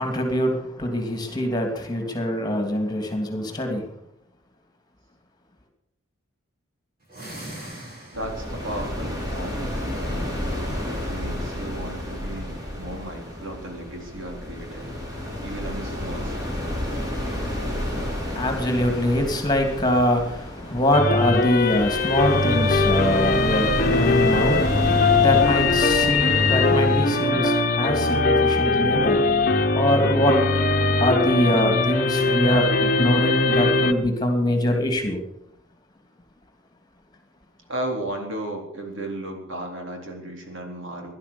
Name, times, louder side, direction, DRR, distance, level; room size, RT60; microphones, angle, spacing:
voice 1, 0.0-3.9 16.7-29.4 29.7-30.4 31.0-35.2, left 1 dB, 20° left, 4 dB, 2.8 m, -24 dB
sound 1, 7.0-8.7, right 1 dB, 45° right, 6.5 m, -39 dB
sound 2, 8.1-27.1, left 1 dB, 20° right, 3.9 m, -31 dB
voice 2, 8.1-16.7 37.7-41.1, right 1 dB, 65° right, 2 dB, 3.9 m, -35 dB
sound 3, 20.9-33.9, left 3 dB, 40° left, 1.2 m, -21 dB
17.0 x 11.5 x 7.1 m, 0.81 s
head